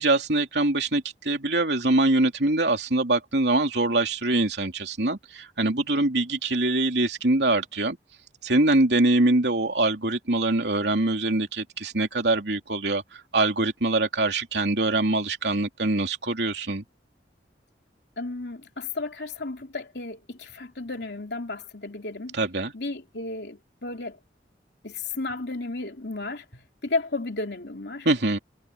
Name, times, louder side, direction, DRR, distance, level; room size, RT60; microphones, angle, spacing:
voice 1, 0.0-8.0 8.4-16.8 22.3-22.7 28.0-28.4, right 2 dB, 70° right, 3.3 m, -24 dB
voice 2, 18.2-22.4 22.7-24.2 24.8-28.1, left 3 dB, 70° left, 3.2 m, -33 dB
head